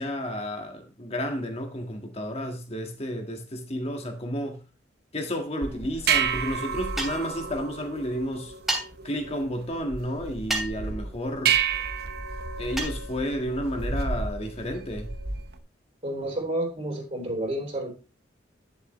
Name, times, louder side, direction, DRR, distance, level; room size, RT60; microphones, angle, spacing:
voice 1, 0.0-4.6 5.1-8.5 9.0-11.6 12.6-15.1, equal, 35° left, 1.7 m, -31 dB
sound 1, 5.6-15.6, right 6 dB, 60° right, 0.9 m, -31 dB
sound 2, 7.0-7.3 8.7-8.8 10.5-10.8 12.8-13.0, right 1 dB, ahead, 2.8 m, -29 dB
voice 2, 16.0-17.9, right 1 dB, 40° right, 3.7 m, -30 dB
10.5 x 7.1 x 3.2 m
head